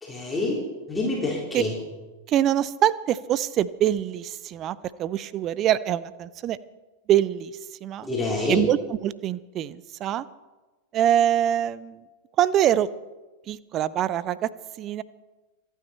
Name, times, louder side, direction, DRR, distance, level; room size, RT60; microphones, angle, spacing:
voice 1, 0.0-0.6 0.9-1.7 8.0-8.6, left 2 dB, 10° left, -4 dB, 3.8 m, -27 dB
voice 2, 2.3-6.6 7.1-7.5 7.8-8.1 8.5-8.8 9.0-10.2 10.9-12.0 12.4-12.9 13.5-14.5 14.8-15.0, right 11 dB, 35° right, 19 dB, 0.6 m, -24 dB
26.5 x 9.3 x 4.3 m, 1.2 s
figure-of-eight pair, 90°, 0 cm